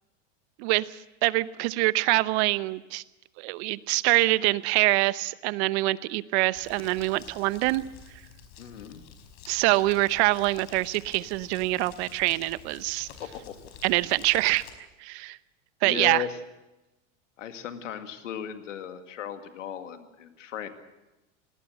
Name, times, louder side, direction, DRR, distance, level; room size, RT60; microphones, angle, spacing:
voice 1, 1.2-3.0 3.4-7.8 9.5-13.1 13.8-14.6 15.0-15.4 15.8-16.2, right 20 dB, 60° right, 17 dB, 0.9 m, -25 dB
Crumpling crinkling, 6.5-14.7, left 6 dB, 50° left, 4.9 m, -49 dB
voice 2, 8.6-9.0 13.2-13.5 15.8-16.4 17.4-20.7, left 9 dB, 85° left, 8 dB, 2.2 m, -36 dB
19.0 x 18.5 x 7.9 m, 1.0 s
hypercardioid pair, 105°, 36 cm